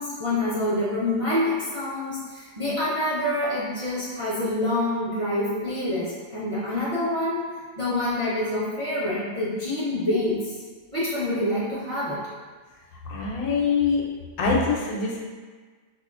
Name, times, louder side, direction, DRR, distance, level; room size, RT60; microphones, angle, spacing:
voice 1, 0.0-7.4 7.8-10.5 10.9-12.2, left 1 dB, 35° right, -10 dB, 0.5 m, -26 dB
voice 2, 13.0-14.0 14.4-15.2, left 4 dB, 75° left, -2 dB, 1.1 m, -24 dB
4.7 x 2.4 x 2.4 m, 1.4 s
omnidirectional pair, 1.7 m